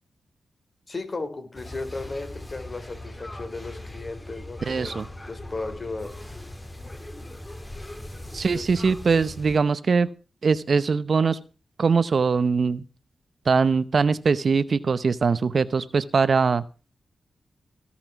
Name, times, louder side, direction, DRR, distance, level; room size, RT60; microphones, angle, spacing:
voice 1, 0.9-6.1 8.5-8.6, left 3 dB, 45° left, 7 dB, 3.4 m, -35 dB
sound 1, 1.6-9.6, left 1 dB, 20° left, 1.8 m, -40 dB
voice 2, 4.7-5.1 8.3-10.1 10.4-11.4 11.8-12.8 13.5-16.6, right 5 dB, 60° right, 16 dB, 0.7 m, -22 dB
17.5 x 6.0 x 5.9 m, 0.34 s
cardioid pair, 50°, 0 cm